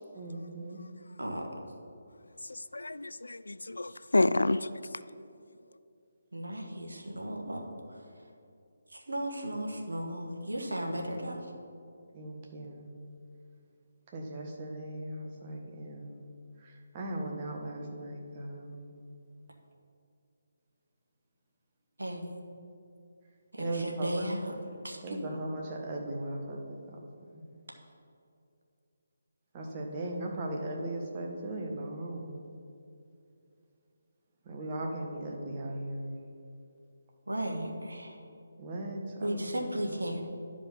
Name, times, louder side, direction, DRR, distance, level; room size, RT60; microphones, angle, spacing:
voice 1, 0.1-0.8 12.1-12.9 14.1-16.2 16.6-18.8 23.6-24.2 25.0-27.0 27.3-27.4 29.5-32.3 34.4-36.1 38.6-39.4, right 1 dB, 30° right, 0 dB, 1.5 m, -38 dB
voice 2, 0.8-1.2 2.4-5.1 5.7-5.8, left 2 dB, 80° left, 15 dB, 0.3 m, -31 dB
voice 3, 6.3-8.0 8.9-11.5 22.0-22.2 23.5-24.5 24.8-25.0 37.3-38.2 39.2-40.2, right 1 dB, 80° right, 1 dB, 1.5 m, -35 dB
11.5 x 5.2 x 5.6 m, 2.6 s
figure-of-eight pair, 150°, 0 cm